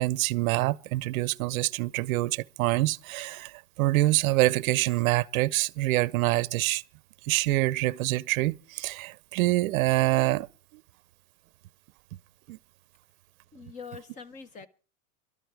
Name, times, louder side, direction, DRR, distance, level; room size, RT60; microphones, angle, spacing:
voice 1, 0.0-6.8 7.3-10.5 12.5-12.6, right 18 dB, 65° right, 0.7 m, -26 dB
voice 2, 13.5-14.7, left 5 dB, 15° left, 0.7 m, -43 dB
22.0 x 12.5 x 4.7 m
supercardioid pair, 165°, 44 cm